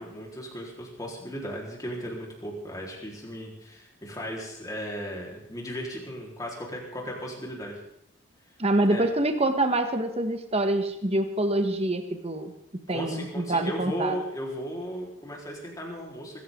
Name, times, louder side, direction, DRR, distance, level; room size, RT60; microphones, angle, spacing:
voice 1, 0.0-7.8 8.9-9.0 12.9-16.4, equal, 15° left, -2 dB, 4.3 m, -36 dB
voice 2, 8.6-12.5 12.9-14.1, right 1 dB, 30° right, 7 dB, 1.5 m, -26 dB
24.0 x 15.0 x 3.9 m, 0.78 s
head